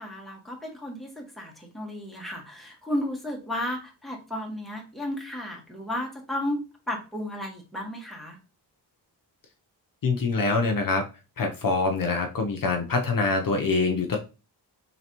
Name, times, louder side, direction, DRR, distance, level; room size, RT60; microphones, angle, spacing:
voice 1, 0.0-8.4, left 1 dB, ahead, -1 dB, 1.4 m, -33 dB
voice 2, 10.0-11.1 11.4-14.2, left 3 dB, 55° left, 3 dB, 0.7 m, -25 dB
3.9 x 3.3 x 2.9 m, 0.31 s
cardioid pair, 70°, 41 cm